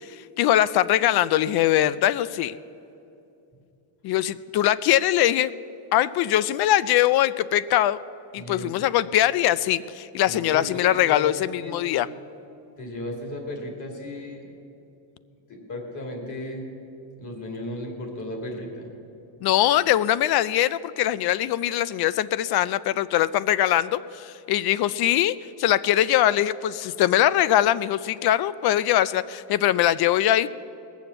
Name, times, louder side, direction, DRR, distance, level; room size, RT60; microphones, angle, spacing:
voice 1, 0.2-2.6 4.0-5.5 5.9-8.0 8.3-12.1 19.4-30.5, left 12 dB, 50° left, 18 dB, 0.5 m, -22 dB
voice 2, 8.4-8.9 10.3-11.9 12.8-14.5 15.5-16.7 17.2-18.9, left 1 dB, 35° left, 2 dB, 2.8 m, -35 dB
19.5 x 7.2 x 7.8 m, 2.7 s
cardioid pair, 150°, 50 cm